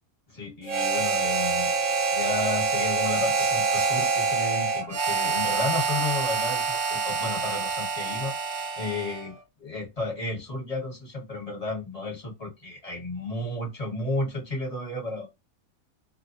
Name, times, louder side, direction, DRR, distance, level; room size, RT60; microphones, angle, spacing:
voice 1, 0.3-1.7 2.1-9.3 9.6-15.3, left 2 dB, 30° left, 1.1 m, -33 dB
Harmonica, 0.7-9.3, right 4 dB, 65° right, 0.9 m, -26 dB
2.4 x 2.1 x 2.5 m
omnidirectional pair, 1.5 m